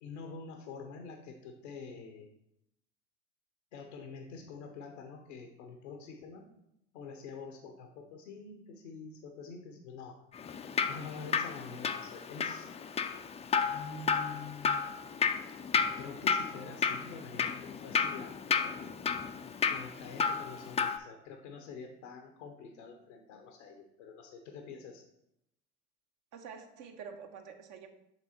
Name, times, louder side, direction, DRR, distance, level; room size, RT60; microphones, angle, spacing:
voice 1, 0.0-2.3 3.7-6.5 6.9-10.2 10.9-12.7 13.7-14.8 16.0-18.9 19.7-25.0, left 4 dB, 85° left, 3 dB, 0.8 m, -46 dB
Drip, 10.4-21.0, left 6 dB, 20° left, 0.4 m, -32 dB
voice 2, 26.3-27.9, right 6 dB, 55° right, 5 dB, 1.0 m, -47 dB
7.8 x 3.4 x 4.2 m, 0.82 s
hypercardioid pair, 75°, 35 cm